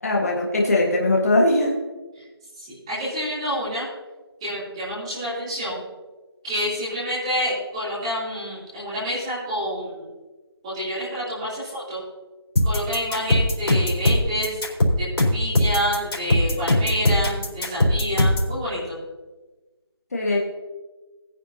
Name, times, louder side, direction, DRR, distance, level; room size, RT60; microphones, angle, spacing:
voice 1, 0.0-1.7 20.1-20.4, left 2 dB, 35° left, -2 dB, 1.7 m, -20 dB
voice 2, 2.5-3.9 4.4-5.8 6.4-10.1 10.6-12.0 12.6-14.6 15.0-15.1 15.3-19.0, equal, 15° right, -9 dB, 3.2 m, -28 dB
sound 1, 12.6-18.5, left 1 dB, 60° left, 4.1 m, -20 dB
19.0 x 9.7 x 2.9 m, 1.2 s
figure-of-eight pair, 175°, 14 cm